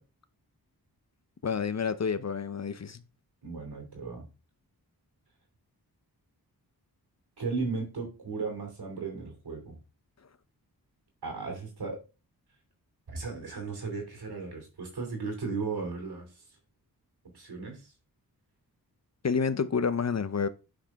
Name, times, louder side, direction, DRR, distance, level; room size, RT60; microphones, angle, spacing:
voice 1, 1.4-3.0 19.2-20.5, left 6 dB, 45° left, 0.7 m, -29 dB
voice 2, 3.4-4.3 7.4-9.8 11.2-12.0 13.1-16.4 17.3-17.9, right 4 dB, 85° right, 2.7 m, -36 dB
8.6 x 5.1 x 3.5 m
wide cardioid pair, 75°, 38 cm